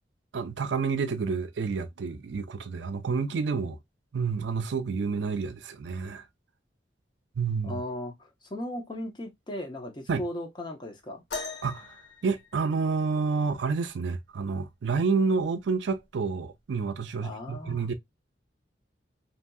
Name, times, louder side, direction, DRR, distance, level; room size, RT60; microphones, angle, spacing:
voice 1, 0.3-3.8 4.1-6.2 7.4-7.8 10.1-10.2 11.6-12.0 12.2-17.9, right 5 dB, 75° right, 0.4 m, -29 dB
voice 2, 7.6-11.2 17.2-17.9, left 1 dB, 25° left, 0.7 m, -37 dB
sound 1, 11.3-13.2 14.9-15.0 15.8-16.0 16.9-17.0, left 4 dB, 65° left, 0.8 m, -40 dB
2.7 x 2.7 x 2.2 m
head